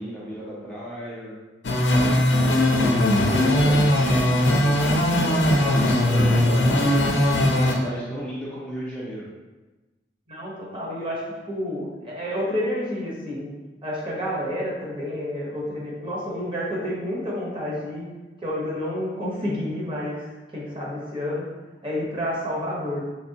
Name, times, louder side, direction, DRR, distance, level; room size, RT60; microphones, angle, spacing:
voice 1, 0.0-1.4 1.9-2.1 2.6-4.9 5.2-6.9 7.5-9.3, equal, 5° left, -8 dB, 0.5 m, -33 dB
sound 1, 1.6-7.7, left 1 dB, 70° left, 0.5 m, -19 dB
voice 2, 10.3-13.5 13.8-18.1 18.4-20.2 20.5-21.5 21.8-23.0, left 1 dB, 30° right, -6 dB, 1.0 m, -29 dB
3.4 x 3.2 x 2.8 m, 1.2 s
head